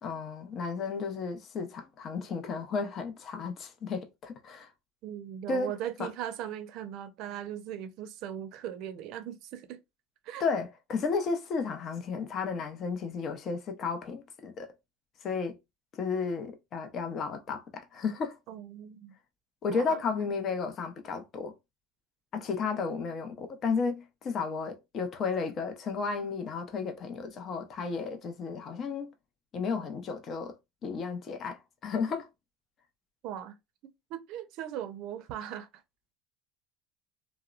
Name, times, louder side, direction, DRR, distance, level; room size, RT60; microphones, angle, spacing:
voice 1, 0.0-4.7 5.5-5.7 6.0-6.1 10.4-14.7 15.2-15.6 16.0-18.4 19.6-21.5 22.3-29.1 29.5-30.5 30.8-32.3, left 5 dB, 45° left, 0.6 m, -33 dB
voice 2, 5.0-9.8 10.2-10.4 18.5-19.1 19.7-20.0 33.2-33.5 34.1-35.7, right 10 dB, 65° right, 0.5 m, -39 dB
2.8 x 2.1 x 2.4 m
supercardioid pair, 90°, 0 cm